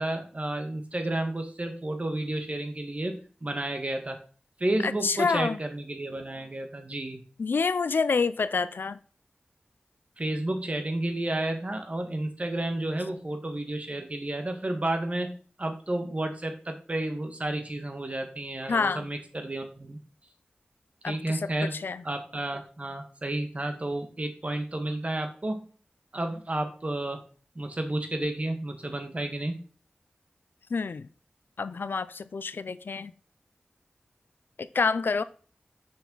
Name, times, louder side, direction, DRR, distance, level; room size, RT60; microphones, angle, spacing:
voice 1, 0.0-4.2 4.6-7.2 10.2-20.0 21.0-21.7 22.0-25.6 26.1-27.2 27.5-29.6, right 1 dB, 40° right, 1.4 m, -31 dB
voice 2, 4.8-5.6 7.4-9.0 18.7-19.1 21.0-22.0 30.7-31.1 31.6-33.1 34.6-35.2, left 4 dB, 80° left, 0.4 m, -28 dB
6.2 x 5.8 x 3.9 m
wide cardioid pair, 45°, 3 cm